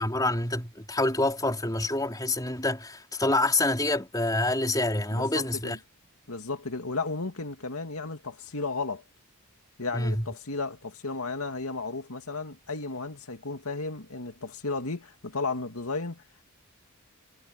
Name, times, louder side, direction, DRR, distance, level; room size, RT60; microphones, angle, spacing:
voice 1, 0.0-5.8 9.9-10.2, left 2 dB, 15° left, 4.6 m, -27 dB
voice 2, 5.1-5.8 6.3-9.0 9.8-16.4, left 3 dB, 80° left, 2.4 m, -34 dB
head